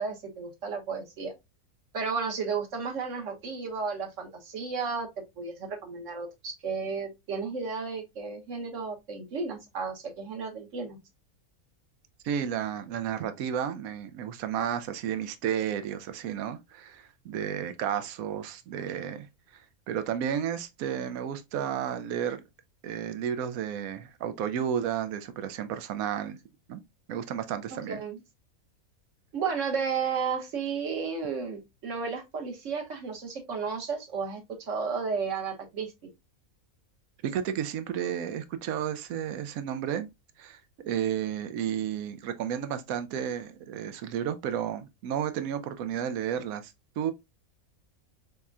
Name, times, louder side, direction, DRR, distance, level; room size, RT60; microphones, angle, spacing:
voice 1, 0.0-1.3 1.9-11.0 27.7-28.2 29.3-35.9, right 5 dB, 60° right, 1.2 m, -33 dB
voice 2, 12.2-19.3 19.9-22.4 22.8-26.4 26.7-26.8 27.1-28.0 37.2-40.1 40.4-47.1, right 9 dB, 80° right, 1.0 m, -32 dB
4.1 x 3.5 x 2.3 m
omnidirectional pair, 1.5 m